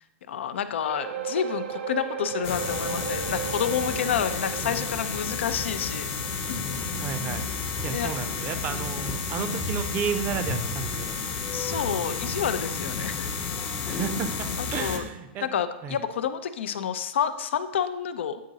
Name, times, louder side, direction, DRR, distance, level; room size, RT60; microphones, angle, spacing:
voice 1, 0.3-6.1 7.8-8.1 8.8-9.1 9.4-9.6 11.5-13.3 13.8-14.0 14.6-15.0 15.4-18.4, left 8 dB, 80° left, 11 dB, 0.5 m, -29 dB
sound 1, 0.9-13.6 13.9-14.1 14.6-14.7, right 7 dB, 70° right, 0.7 m, -39 dB
sound 2, 2.4-15.0, left 4 dB, 30° left, 0.7 m, -31 dB
voice 2, 7.0-7.5 7.8-11.2 13.8-15.5 15.8-16.0, right 7 dB, 30° right, 10 dB, 0.5 m, -32 dB
8.5 x 3.7 x 4.0 m, 0.94 s
hypercardioid pair, 140°, 6 cm